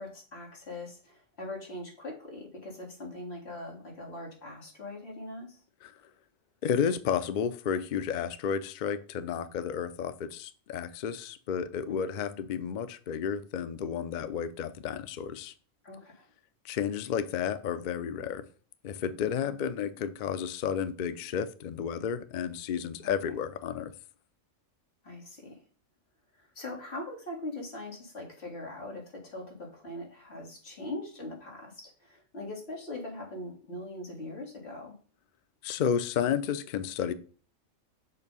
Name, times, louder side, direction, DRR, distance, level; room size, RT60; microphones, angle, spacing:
voice 1, 0.0-5.6 11.9-12.2 15.8-16.3 19.4-19.7 20.0-20.1 23.0-23.1 25.0-25.6 26.3-35.0, left 2 dB, 55° left, 2.1 m, -41 dB
voice 2, 6.6-15.5 16.6-18.4 18.8-23.9 35.6-37.1, left 8 dB, 80° left, 0.4 m, -32 dB
6.7 x 2.6 x 5.3 m
omnidirectional pair, 1.4 m